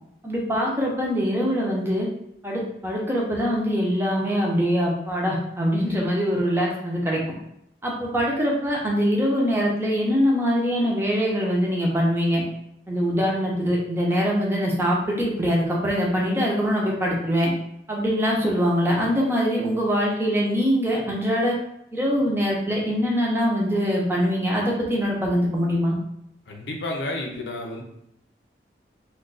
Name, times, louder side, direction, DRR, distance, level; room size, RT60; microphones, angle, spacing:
voice 1, 0.2-2.1 2.4-7.2 7.8-12.4 12.9-17.5 17.9-21.5 21.9-25.9, equal, 15° right, -3 dB, 0.6 m, -23 dB
voice 2, 26.5-27.8, left 2 dB, 85° left, 1 dB, 0.6 m, -31 dB
2.4 x 2.3 x 3.8 m, 0.76 s
head